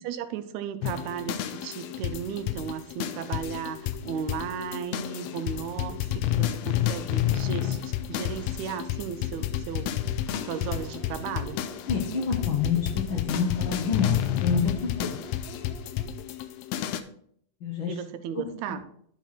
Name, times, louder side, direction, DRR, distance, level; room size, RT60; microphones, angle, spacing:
voice 1, 0.0-10.0 10.4-11.6 17.9-18.8, right 8 dB, 80° right, 10 dB, 1.9 m, -35 dB
sound 1, 0.8-17.0, left 11 dB, 80° left, 1.7 m, -30 dB
sound 2, 10.3-16.2, right 4 dB, 30° right, 1.9 m, -48 dB
voice 2, 11.9-15.2 17.6-18.0 18.3-18.7, left 5 dB, 60° left, 0 dB, 1.4 m, -28 dB
10.5 x 4.5 x 4.4 m, 0.65 s
omnidirectional pair, 3.3 m